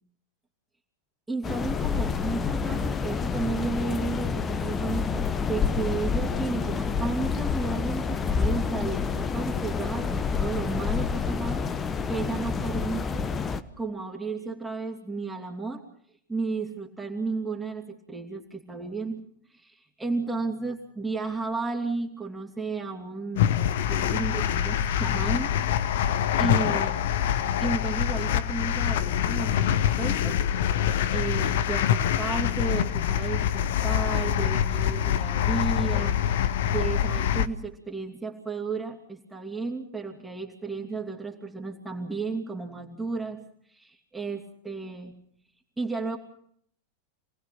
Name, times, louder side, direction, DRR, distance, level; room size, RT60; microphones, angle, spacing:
voice 1, 1.3-13.3 13.8-15.8 16.3-19.2 19.5-25.9 26.4-27.1 27.5-43.4 43.7-45.1 45.8-46.2, right 4 dB, 10° right, -1 dB, 2.9 m, -33 dB
sound 1, 1.4-13.6, left 5 dB, 20° left, 1.2 m, -28 dB
sound 2, 23.4-37.5, left 10 dB, 55° left, 0.9 m, -25 dB
28.5 x 19.0 x 5.9 m, 0.66 s
figure-of-eight pair, 90°, 0 cm